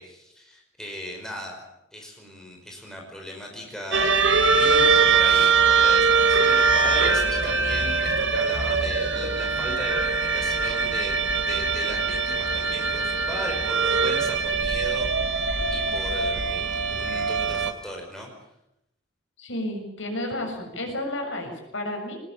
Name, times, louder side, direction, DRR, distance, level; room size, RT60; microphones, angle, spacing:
voice 1, 0.0-1.6 1.9-18.3, left 1 dB, 5° left, 0 dB, 5.5 m, -37 dB
sound 1, 3.9-17.7, right 4 dB, 70° right, 2.1 m, -22 dB
voice 2, 19.4-22.2, left 1 dB, 75° left, 3 dB, 7.0 m, -31 dB
23.5 x 20.0 x 8.9 m, 0.83 s
head